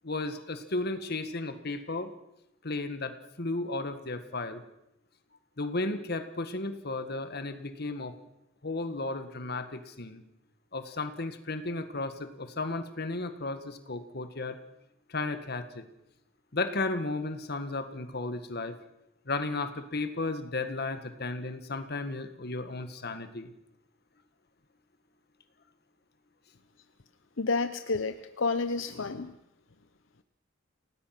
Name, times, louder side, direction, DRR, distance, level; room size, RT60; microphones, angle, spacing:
voice 1, 0.0-2.1 2.6-4.6 5.6-8.2 8.6-10.2 10.7-14.6 15.1-15.8 16.5-18.8 19.3-23.5, left 2 dB, 55° left, 9 dB, 1.8 m, -34 dB
voice 2, 27.4-29.3, left 3 dB, 75° left, 9 dB, 0.9 m, -30 dB
28.5 x 18.5 x 6.0 m, 0.85 s
head